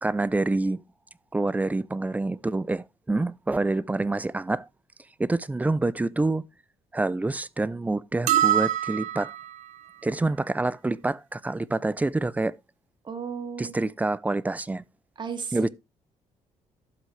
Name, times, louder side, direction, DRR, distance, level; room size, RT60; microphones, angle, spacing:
voice 1, 0.0-0.8 1.3-4.7 5.2-6.4 6.9-9.3 10.0-12.6 13.6-14.8 15.5-15.7, right 2 dB, 15° right, 0.5 m, -27 dB
sound 1, 8.3-9.6, right 12 dB, 85° right, 0.9 m, -24 dB
voice 2, 13.0-13.9 15.2-15.7, right 6 dB, 40° right, 2.2 m, -34 dB
12.0 x 7.8 x 3.2 m
cardioid pair, 100°, 12 cm